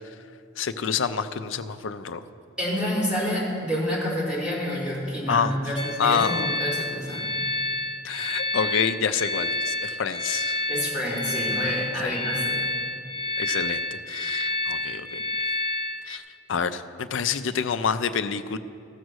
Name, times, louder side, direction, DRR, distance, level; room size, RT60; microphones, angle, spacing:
voice 1, 0.6-2.2 5.3-5.5 6.0-6.5 8.0-10.6 12.0-12.2 13.4-15.5 16.1-16.2 16.5-18.6, left 6 dB, 70° left, 11 dB, 0.5 m, -27 dB
voice 2, 2.6-7.3 10.7-12.6, equal, 5° right, -10 dB, 3.4 m, -28 dB
sound 1, 5.8-16.2, left 2 dB, 25° left, 0.7 m, -29 dB
15.0 x 6.2 x 6.3 m, 2.4 s
head